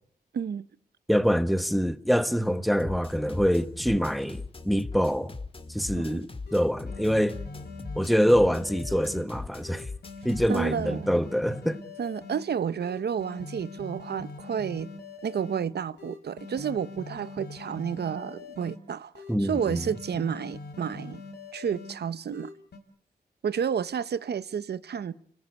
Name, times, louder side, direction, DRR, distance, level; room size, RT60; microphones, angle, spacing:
voice 1, 0.3-0.6 6.0-6.2 10.5-11.1 12.0-14.9 15.2-21.2 21.5-22.5 23.4-25.1, right 7 dB, 80° right, 1.1 m, -31 dB
voice 2, 1.1-5.3 5.7-7.4 7.9-9.8 10.2-11.8 19.3-19.8, equal, ahead, 1.4 m, -25 dB
sound 1, 2.8-10.8, left 3 dB, 35° left, 2.2 m, -40 dB
sound 2, 6.0-6.1 6.5-9.2 9.6-12.4 12.8-15.6 16.0-18.8 19.1-21.9 22.3-22.8, left 3 dB, 80° left, 4.9 m, -43 dB
30.0 x 20.0 x 8.3 m
wide cardioid pair, 105°, 17 cm